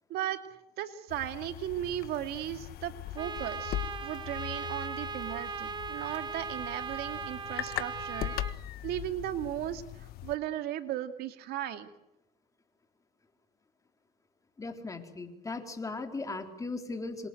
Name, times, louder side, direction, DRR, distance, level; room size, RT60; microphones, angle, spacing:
voice 1, 0.8-3.7 4.0-8.3 8.8-11.9, right 12 dB, 70° right, 9 dB, 2.4 m, -36 dB
sound 1, 1.1-10.4, left 14 dB, 65° left, 1.6 m, -40 dB
Trumpet, 3.2-8.5, right 5 dB, 25° right, 1.6 m, -38 dB
voice 2, 14.6-17.3, left 3 dB, 20° left, 5 dB, 4.0 m, -38 dB
27.5 x 25.5 x 8.0 m, 0.82 s
cardioid pair, 115°, 17 cm